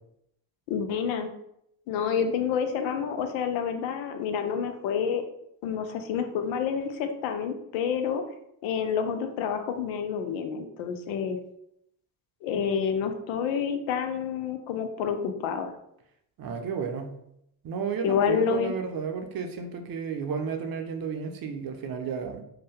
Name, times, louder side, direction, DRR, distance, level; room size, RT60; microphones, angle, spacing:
voice 1, 0.7-1.3 1.9-5.2 5.6-8.2 8.6-11.4 12.4-15.7 18.0-18.7, left 7 dB, 70° left, 7 dB, 0.6 m, -28 dB
voice 2, 16.4-17.1 17.6-22.4, right 6 dB, 45° right, 5 dB, 0.6 m, -32 dB
2.7 x 2.2 x 3.4 m, 0.77 s
hypercardioid pair, 50°, 48 cm